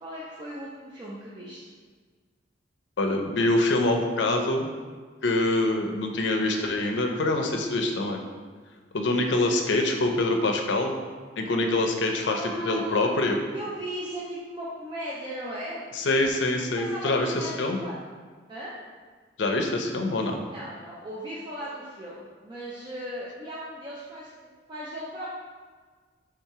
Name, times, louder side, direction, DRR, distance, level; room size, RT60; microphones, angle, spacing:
voice 1, 0.0-1.6 12.2-13.1 13.5-15.8 16.8-17.9 18.5-18.7 20.5-24.3 24.7-25.3, right 1 dB, 25° right, -7 dB, 0.5 m, -37 dB
voice 2, 3.0-4.7 5.2-8.2 8.9-10.9 11.4-13.4 15.9-17.8 19.4-20.4, left 2 dB, 80° left, 3 dB, 0.5 m, -25 dB
3.7 x 2.8 x 4.6 m, 1.5 s
head